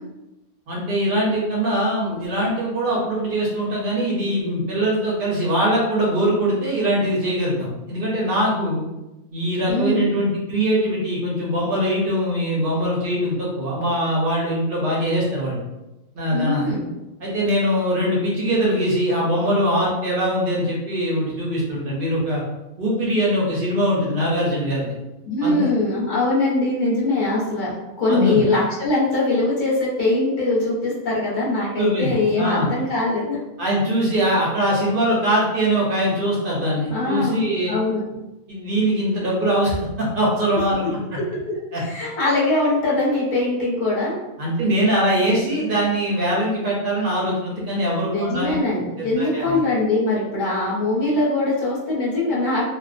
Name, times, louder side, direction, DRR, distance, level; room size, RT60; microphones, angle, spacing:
voice 1, 0.7-8.9 9.3-15.6 16.1-16.7 17.2-22.4 22.8-24.9 25.4-25.7 28.1-28.4 31.8-32.7 33.6-37.7 38.5-40.9 41.7-41.8 44.4-48.6 49.0-49.6, equal, 50° right, -4 dB, 0.6 m, -22 dB
voice 2, 9.7-10.2 16.3-16.9 25.3-33.4 36.9-37.4 37.7-38.0 41.8-44.2 48.1-52.6, left 2 dB, 40° left, -6 dB, 0.9 m, -22 dB
2.5 x 2.1 x 2.5 m, 0.98 s
omnidirectional pair, 1.5 m